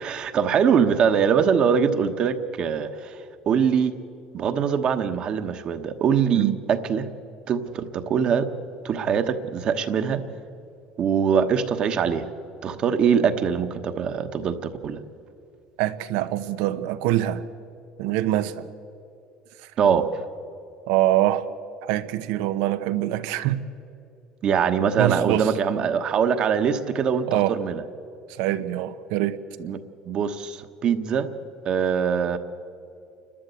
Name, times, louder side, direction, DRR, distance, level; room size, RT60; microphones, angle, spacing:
voice 1, 0.0-3.9 4.3-7.1 7.5-8.5 8.8-10.2 11.0-12.3 12.6-15.0 19.8-20.1 24.4-27.8 29.6-31.3 31.6-32.4, right 7 dB, 40° right, 1.2 m, -23 dB
voice 2, 15.8-17.4 18.0-18.7 19.6-19.7 20.9-21.5 21.8-23.6 25.0-25.5 27.3-27.6 28.4-29.4, right 14 dB, 90° right, 0.9 m, -24 dB
29.0 x 12.5 x 8.2 m
cardioid pair, 145°, 2 cm